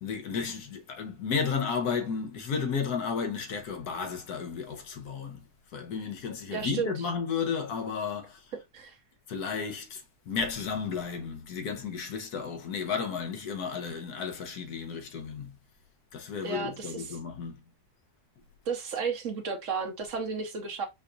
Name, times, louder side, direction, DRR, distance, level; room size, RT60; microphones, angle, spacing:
voice 1, 0.0-5.4 5.7-8.5 9.3-15.5 16.1-17.6, left 6 dB, 80° left, 1.4 m, -33 dB
voice 2, 6.5-6.9 8.7-9.0 16.4-17.2 18.7-20.9, right 5 dB, 60° right, 1.1 m, -33 dB
5.0 x 2.6 x 2.3 m
omnidirectional pair, 1.6 m